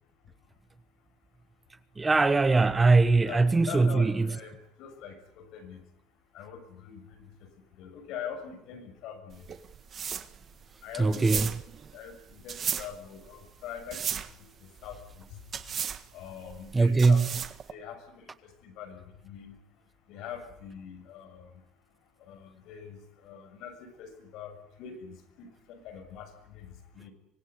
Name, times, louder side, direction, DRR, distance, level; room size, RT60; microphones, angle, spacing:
voice 1, 2.0-4.4 11.0-11.5 16.7-17.3, right 3 dB, 15° right, 1.0 m, -22 dB
voice 2, 3.2-5.8 6.3-7.5 7.8-9.5 10.8-11.6 11.9-14.5 14.8-15.3 16.1-17.2 17.7-19.6 20.1-21.5 22.2-27.1, left 7 dB, 65° left, 6.9 m, -43 dB
sound 1, 9.3-17.7, right 7 dB, 35° right, 1.6 m, -36 dB
25.0 x 20.0 x 9.7 m
cardioid pair, 155°, 0 cm